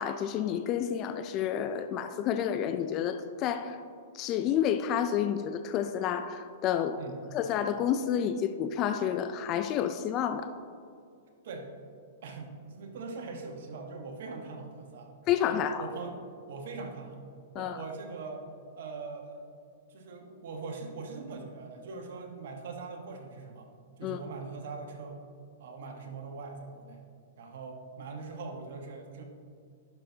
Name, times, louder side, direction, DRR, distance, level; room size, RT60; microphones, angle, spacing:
voice 1, 0.0-3.8 4.1-7.0 7.3-10.5 15.3-15.8 17.5-17.8 24.0-24.2, left 9 dB, 35° left, 9 dB, 0.3 m, -30 dB
voice 2, 12.2-15.1 15.5-16.2 16.5-17.2 17.5-18.5 18.8-19.4 19.9-23.7 24.0-25.2 25.6-27.0 27.4-29.2, right 4 dB, 70° right, 3 dB, 1.2 m, -41 dB
11.5 x 5.8 x 2.8 m, 2.3 s
hypercardioid pair, 130°, 0 cm